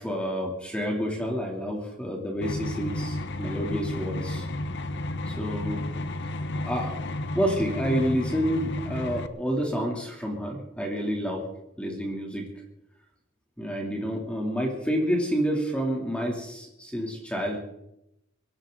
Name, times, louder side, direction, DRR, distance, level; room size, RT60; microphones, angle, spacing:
voice 1, 0.0-4.5 5.3-5.8 6.6-6.9 7.3-11.4 11.8-12.5 13.6-17.6, equal, 5° left, -1 dB, 2.8 m, -29 dB
sound 1, 2.4-9.3, left 1 dB, 60° left, 1.0 m, -32 dB
23.5 x 14.0 x 3.9 m, 0.85 s
head